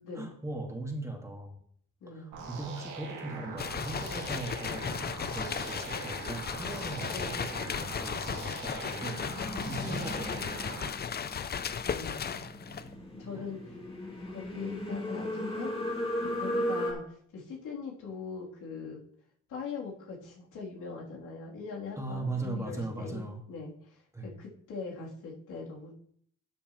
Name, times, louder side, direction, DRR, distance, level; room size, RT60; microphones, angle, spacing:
voice 1, 0.1-1.6 2.1-9.2 9.6-10.4 13.3-13.5 22.0-23.4 24.1-24.3, right 2 dB, 10° right, 1 dB, 2.0 m, -39 dB
voice 2, 2.0-2.4 7.1-7.4 9.8-10.1 11.2-12.4 12.7-12.8 13.1-13.8 14.3-15.9 16.2-19.0 19.5-25.9, left 4 dB, 80° left, -4 dB, 3.4 m, -42 dB
sound 1, 2.3-10.9, right 5 dB, 80° right, 2.3 m, -42 dB
sound 2, 3.6-12.9, left 7 dB, 35° left, 0.5 m, -36 dB
sound 3, 6.7-16.9, equal, 20° left, 2.7 m, -38 dB
12.5 x 7.0 x 3.2 m, 0.63 s
cardioid pair, 90°, 30 cm